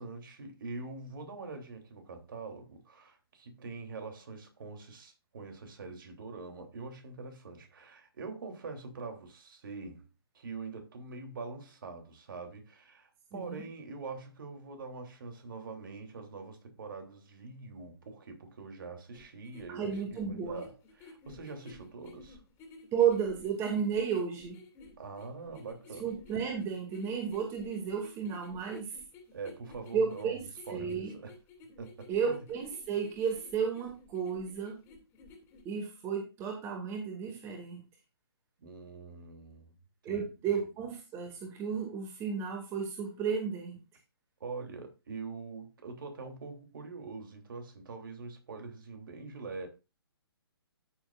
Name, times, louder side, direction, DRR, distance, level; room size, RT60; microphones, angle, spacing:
voice 1, 0.0-10.1 10.3-22.4 25.0-26.1 29.3-31.3 31.8-32.4 38.6-39.7 40.0-40.3 44.4-49.7, right 4 dB, 55° right, 3.2 m, -44 dB
voice 2, 13.3-13.6 19.7-20.6 22.9-24.6 26.0-29.0 29.9-30.4 30.7-31.1 32.1-34.8 35.6-37.8 40.0-43.8, right 7 dB, 20° right, 2.3 m, -33 dB
sound 1, 19.1-35.6, left 3 dB, 20° left, 2.9 m, -54 dB
13.5 x 7.3 x 2.5 m
figure-of-eight pair, 135°, 13 cm